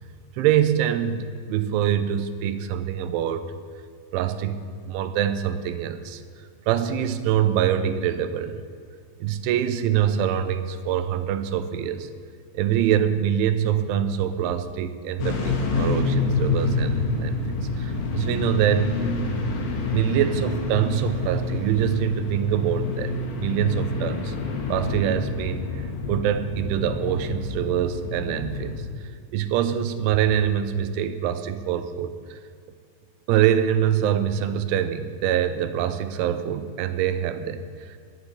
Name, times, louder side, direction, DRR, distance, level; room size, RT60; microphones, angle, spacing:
voice 1, 0.4-3.5 4.1-6.2 6.7-8.6 9.2-12.1 12.5-19.1 19.4-24.4 24.7-28.8 29.3-32.4 33.3-38.0, right 10 dB, 85° right, 10 dB, 3.2 m, -25 dB
sound 1, 15.2-28.8, left 3 dB, 80° left, 3.9 m, -27 dB
11.5 x 8.5 x 9.7 m, 2.2 s
omnidirectional pair, 5.4 m